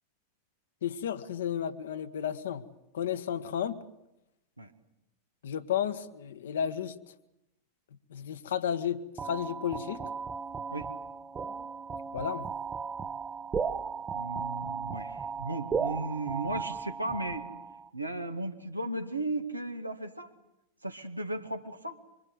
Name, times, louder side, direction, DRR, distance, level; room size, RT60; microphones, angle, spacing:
voice 1, 0.8-2.6 2.9-3.8 5.4-7.0 8.1-10.1 12.1-12.4, left 9 dB, 60° left, 1.5 m, -32 dB
sound 1, 9.2-17.9, right 5 dB, 20° right, 1.0 m, -36 dB
voice 2, 14.1-17.4 17.9-20.3 20.8-22.0, right 2 dB, 85° right, 2.0 m, -35 dB
26.0 x 24.5 x 8.0 m
figure-of-eight pair, 90°, 0 cm